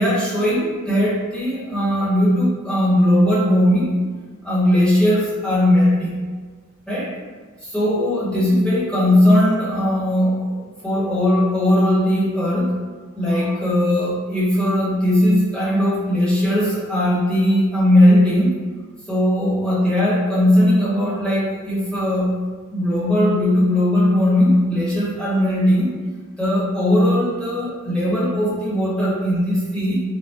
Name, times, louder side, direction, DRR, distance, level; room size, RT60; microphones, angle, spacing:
voice 1, 0.0-4.0 4.4-6.2 6.9-7.1 7.6-10.5 10.8-12.7 13.1-18.6 19.1-22.3 22.7-25.9 26.4-30.0, left 1 dB, 5° left, -10 dB, 1.0 m, -18 dB
4.7 x 2.2 x 2.4 m, 1.5 s
head